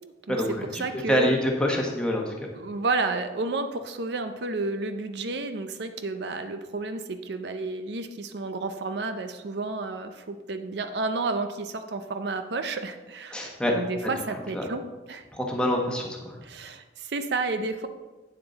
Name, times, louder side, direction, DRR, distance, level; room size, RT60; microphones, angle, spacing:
voice 1, 0.0-1.4 2.5-15.2 16.4-17.9, right 3 dB, 65° right, 8 dB, 0.5 m, -31 dB
voice 2, 1.1-2.3 13.3-13.7 14.5-14.6 15.3-16.4, equal, 5° left, 0 dB, 1.1 m, -26 dB
8.9 x 7.3 x 3.9 m, 1.2 s
head